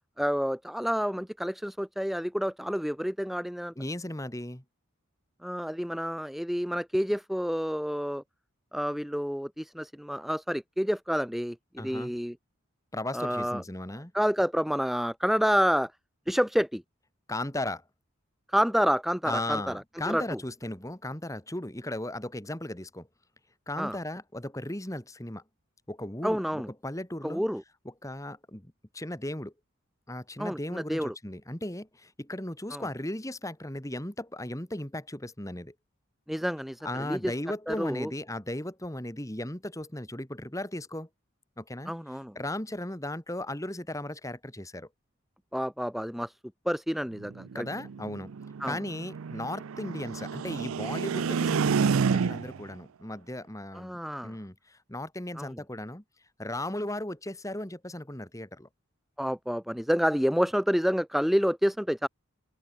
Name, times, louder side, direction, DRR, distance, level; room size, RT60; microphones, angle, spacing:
voice 1, 0.2-3.7 5.4-8.2 8.7-12.3 13.1-13.6 14.1-15.9 16.3-16.8 18.5-19.8 20.1-20.4 23.8-24.0 26.2-26.7 27.2-27.6 30.4-31.1 32.7-32.8 36.3-37.3 37.7-38.1 41.9-42.4 45.5-46.3 46.7-47.7 48.6-48.8 53.7-54.4 55.4-55.5 59.2-62.1, equal, ahead, 0.8 m, -29 dB
voice 2, 3.8-4.6 11.8-12.1 12.9-14.1 17.3-17.8 19.2-23.1 23.7-25.4 25.9-27.4 28.0-29.5 30.1-35.7 36.8-41.1 41.6-41.9 42.4-44.9 47.5-48.3 48.6-56.0 56.4-58.7, left 1 dB, 15° left, 2.2 m, -36 dB
sound 1, 47.2-52.7, right 5 dB, 90° right, 0.5 m, -29 dB
head